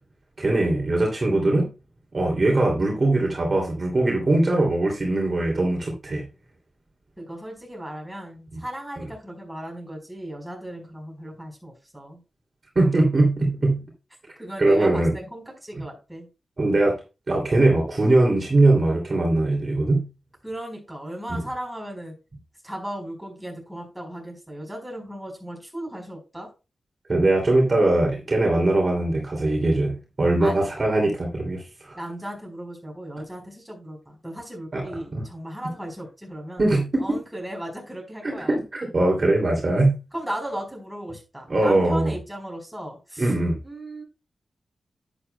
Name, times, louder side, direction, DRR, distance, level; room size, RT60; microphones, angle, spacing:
voice 1, 0.4-1.7 2.1-6.2 8.5-8.6 12.7-13.8 14.6-15.1 16.6-17.0 17.3-20.0 21.3-21.4 27.1-32.0 34.7-34.8 35.1-35.2 36.6-37.1 38.2-39.9 41.5-42.1 43.2-43.6, right 2 dB, 40° right, 0 dB, 2.7 m, -21 dB
voice 2, 7.2-12.2 14.4-16.3 20.4-22.1 22.6-26.5 30.4-30.5 31.9-36.6 37.0-38.6 40.1-43.3 43.6-44.0, right 1 dB, 5° right, 1 dB, 4.4 m, -36 dB
11.0 x 8.9 x 2.2 m, 0.29 s
wide cardioid pair, 110°, 0 cm